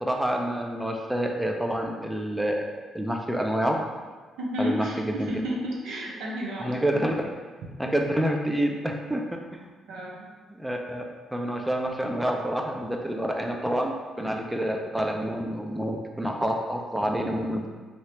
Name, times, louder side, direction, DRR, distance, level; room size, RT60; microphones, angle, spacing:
voice 1, 0.0-3.8 4.6-5.1 6.6-7.1 7.8-9.4 10.6-11.0 11.3-17.7, right 1 dB, 5° right, 2 dB, 0.3 m, -28 dB
voice 2, 4.4-6.7 9.9-10.3, equal, 85° right, -3 dB, 0.7 m, -31 dB
2.9 x 2.7 x 3.2 m, 1.4 s
cardioid pair, 90°, 0 cm